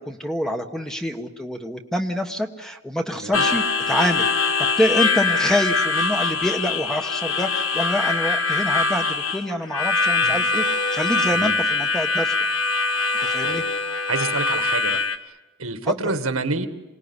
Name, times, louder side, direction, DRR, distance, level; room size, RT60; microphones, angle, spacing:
voice 1, 0.0-4.5 4.8-12.5 13.2-13.6 15.9-16.1, equal, 5° left, 5 dB, 1.3 m, -26 dB
Harmonica, 3.3-15.2, left 4 dB, 65° left, 1.4 m, -23 dB
voice 2, 14.1-15.0 15.3-15.4 15.6-16.7, right 3 dB, 70° right, 7 dB, 1.9 m, -27 dB
27.5 x 19.0 x 9.8 m, 1.1 s
head